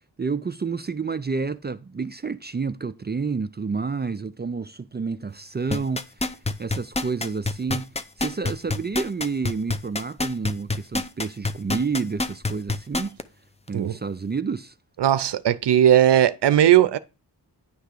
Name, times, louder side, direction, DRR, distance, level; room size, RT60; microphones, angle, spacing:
voice 1, 0.2-13.2 13.7-14.7, right 5 dB, 25° right, 0.4 m, -29 dB
sound 1, 5.7-13.2 13.7-13.8, left 2 dB, 15° left, 0.6 m, -26 dB
voice 2, 15.0-17.0, right 11 dB, 85° right, 0.6 m, -17 dB
10.0 x 3.5 x 6.6 m
wide cardioid pair, 95°, 40 cm